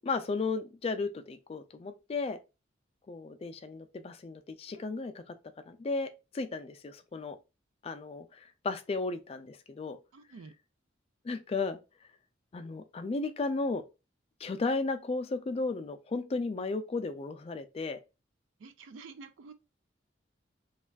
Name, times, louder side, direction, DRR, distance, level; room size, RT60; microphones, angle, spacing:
voice 1, 0.0-2.4 3.1-5.2 5.7-6.1 6.3-7.4 7.8-10.0 11.2-11.8 12.5-13.8 14.4-18.0, left 3 dB, 30° left, 0.3 m, -34 dB
voice 2, 10.1-10.5 18.6-19.5, right 4 dB, 90° right, 0.4 m, -49 dB
3.2 x 2.3 x 2.3 m
head